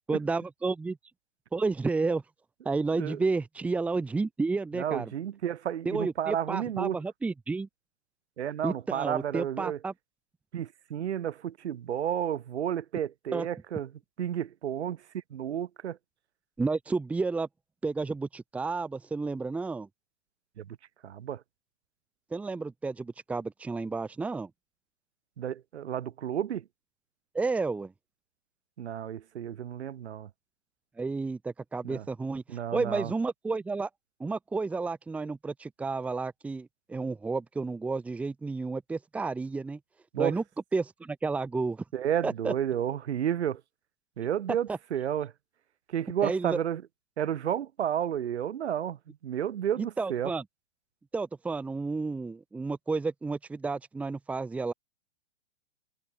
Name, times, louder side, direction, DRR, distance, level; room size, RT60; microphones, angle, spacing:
voice 1, 0.1-1.0 1.5-2.2 2.7-5.1 5.9-7.7 8.6-9.9 13.3-13.5 16.6-17.5 17.8-19.9 22.3-24.5 27.3-27.9 31.0-33.9 34.2-39.8 40.2-40.4 40.7-41.8 42.2-42.5 44.7-44.8 46.2-46.6 50.0-50.4 51.1-54.7, right 3 dB, 5° right, 2.0 m, -31 dB
voice 2, 4.7-7.0 8.4-9.8 10.5-13.9 14.2-15.0 15.3-16.0 20.6-20.8 21.0-21.4 25.4-26.6 28.8-30.3 31.8-32.0 32.5-33.1 40.1-40.4 41.9-43.6 44.2-45.3 45.9-46.8 47.2-50.3, right 10 dB, 65° right, 4.9 m, -31 dB
hypercardioid pair, 180°, 36 cm